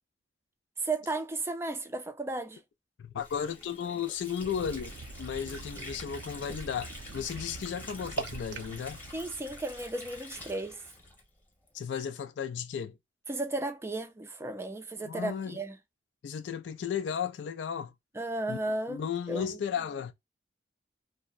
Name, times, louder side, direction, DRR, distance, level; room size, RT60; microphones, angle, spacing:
voice 1, 0.8-2.6 9.1-10.8 13.3-15.8 18.2-19.5, right 2 dB, 15° right, 0.4 m, -34 dB
voice 2, 3.0-4.9 5.2-9.0 11.7-13.0 15.0-15.6 16.2-17.9 18.5-18.6 18.9-20.1, left 7 dB, 75° left, 0.3 m, -34 dB
Water / Sink (filling or washing), 3.2-11.8, left 1 dB, 10° left, 0.9 m, -47 dB
sound 1, 4.4-10.2, right 3 dB, 75° right, 0.4 m, -43 dB
2.6 x 2.1 x 2.3 m
head